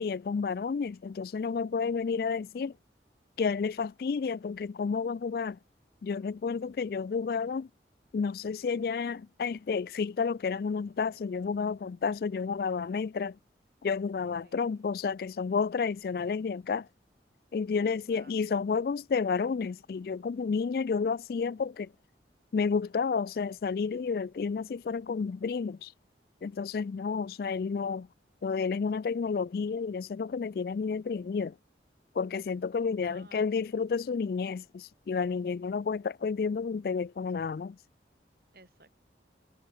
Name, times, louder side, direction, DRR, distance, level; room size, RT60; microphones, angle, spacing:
voice 1, 0.0-2.7 3.4-5.6 6.0-7.7 8.1-13.4 13.8-16.9 17.5-21.9 22.5-25.9 26.4-28.1 28.4-31.6 32.1-37.8, left 5 dB, 55° left, 0.3 m, -31 dB
voice 2, 14.4-15.5 18.1-18.4 33.0-33.8 38.5-39.0, right 2 dB, 55° right, 7.5 m, -59 dB
head